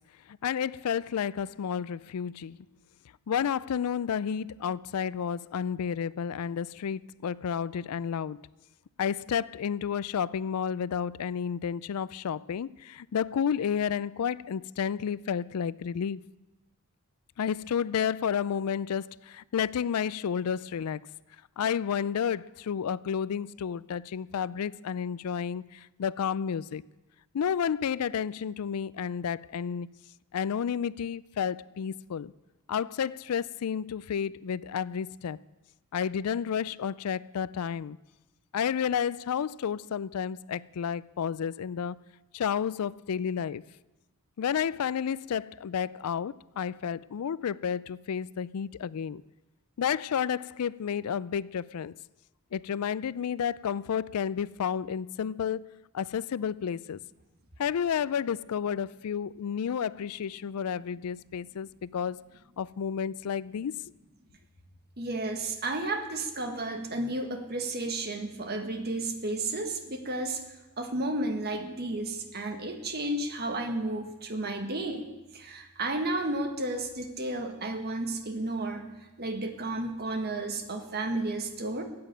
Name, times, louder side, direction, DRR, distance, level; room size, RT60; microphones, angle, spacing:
voice 1, 0.3-2.6 3.3-8.5 9.0-16.3 17.4-21.0 21.6-26.8 27.3-29.9 30.3-32.3 32.7-35.4 35.9-38.0 38.5-42.0 42.3-43.6 44.4-49.2 49.8-52.0 52.5-55.7 55.9-57.0 57.6-62.2 62.6-63.8, left 7 dB, 80° left, 0.4 m, -31 dB
voice 2, 65.0-70.4 70.8-75.1 75.3-78.9 79.2-81.8, right 2 dB, 45° right, 1.6 m, -32 dB
14.0 x 8.7 x 9.0 m
head